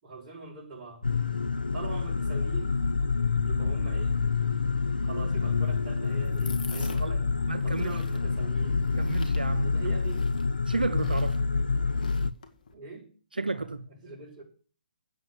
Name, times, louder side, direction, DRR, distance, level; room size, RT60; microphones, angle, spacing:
voice 1, 0.0-1.1 1.7-2.8 3.4-4.2 5.0-7.3 7.6-8.9 9.6-10.3 12.7-13.1 13.3-14.4, right 4 dB, 30° right, 6.0 m, -42 dB
sound 1, 1.0-12.3, left 4 dB, 85° left, 0.6 m, -27 dB
sound 2, 5.3-12.7, left 5 dB, 55° left, 2.0 m, -49 dB
voice 2, 6.7-7.2 7.5-7.9 8.8-9.8 10.7-11.4 13.3-13.9, right 3 dB, 85° right, 0.7 m, -32 dB
8.8 x 7.9 x 9.2 m
figure-of-eight pair, 135°, 5 cm